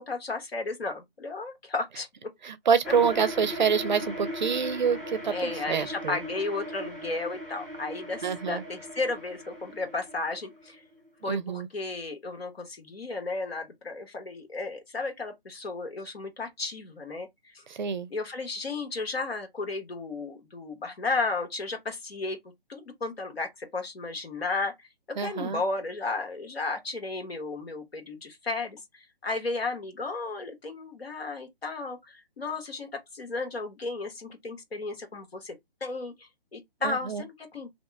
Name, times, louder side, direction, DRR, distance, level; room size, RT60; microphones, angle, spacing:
voice 1, 0.0-2.1 5.3-10.8 11.2-17.3 17.5-17.6 18.1-22.4 22.7-24.7 25.1-37.8, left 3 dB, 85° left, 1.3 m, -34 dB
voice 2, 2.4-6.2 8.2-8.6 11.3-11.7 17.7-18.1 25.2-25.6 36.8-37.2, right 6 dB, 50° right, 0.5 m, -27 dB
sound 1, 2.8-11.1, equal, 10° left, 1.0 m, -39 dB
2.8 x 2.1 x 3.4 m
hypercardioid pair, 155°, 30 cm